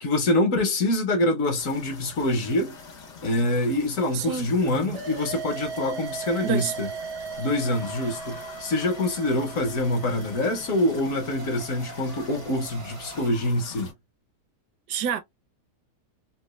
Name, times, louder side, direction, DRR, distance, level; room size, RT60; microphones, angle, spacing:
voice 1, 0.0-2.8 3.2-6.9 7.4-13.9, left 1 dB, 60° left, 1.1 m, -25 dB
sound 1, 1.6-13.9, left 5 dB, 90° left, 1.8 m, -45 dB
voice 2, 4.1-4.5 6.4-6.7 14.9-15.2, right 8 dB, 80° right, 1.2 m, -27 dB
sound 2, 4.6-13.3, right 6 dB, 60° right, 0.7 m, -38 dB
4.0 x 2.3 x 2.3 m
omnidirectional pair, 1.7 m